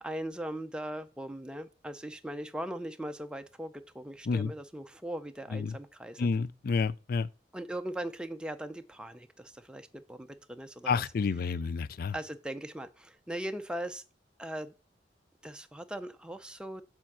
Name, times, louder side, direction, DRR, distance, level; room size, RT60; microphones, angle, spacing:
voice 1, 0.0-6.3 7.5-11.0 12.1-14.0 14.4-14.7 15.4-16.8, right 1 dB, 5° right, 0.5 m, -39 dB
voice 2, 6.2-7.3 10.9-12.1, left 5 dB, 55° left, 0.4 m, -30 dB
7.3 x 4.4 x 5.9 m
head